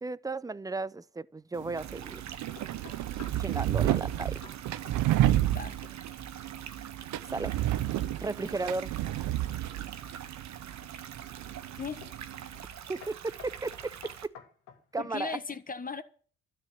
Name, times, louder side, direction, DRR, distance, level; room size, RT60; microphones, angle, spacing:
voice 1, 0.0-2.2 3.4-4.4 7.3-7.6 8.2-8.9 12.9-14.3 14.9-15.4, right 3 dB, 10° right, 0.5 m, -35 dB
sound 1, 1.5-12.6, right 13 dB, 90° right, 0.8 m, -31 dB
sound 2, 1.8-14.3, right 9 dB, 65° right, 1.4 m, -45 dB
sound 3, 2.6-3.5 3.9-4.1 4.4-4.6 4.9-5.6 5.8-6.2 9.6-10.2 10.8-11.2 12.0-12.3 12.5-12.7 13.0-14.9, left 7 dB, 90° left, 2.3 m, -51 dB
voice 2, 15.0-16.0, left 5 dB, 30° left, 1.6 m, -37 dB
12.5 x 6.7 x 9.3 m
cardioid pair, 90°, 30 cm